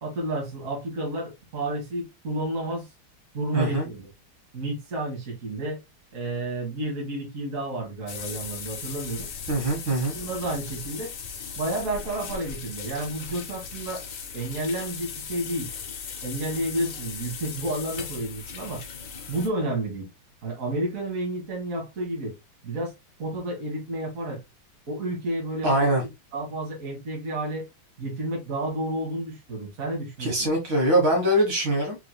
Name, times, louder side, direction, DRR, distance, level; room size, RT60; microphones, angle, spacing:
voice 1, 0.0-2.9 3.3-4.1 4.5-5.8 6.1-9.3 10.1-11.1 11.6-14.0 14.3-15.7 16.2-18.8 19.3-20.1 20.4-22.4 22.6-22.9 23.2-24.4 24.9-25.9 26.3-27.7 28.0-30.3, right 1 dB, 40° right, 1.9 m, -31 dB
voice 2, 3.5-3.9 9.5-10.2 25.6-26.0 30.2-32.0, right 1 dB, 65° right, 2.3 m, -23 dB
sound 1, 8.1-19.5, left 6 dB, 60° left, 1.3 m, -38 dB
4.6 x 3.6 x 2.2 m
omnidirectional pair, 2.3 m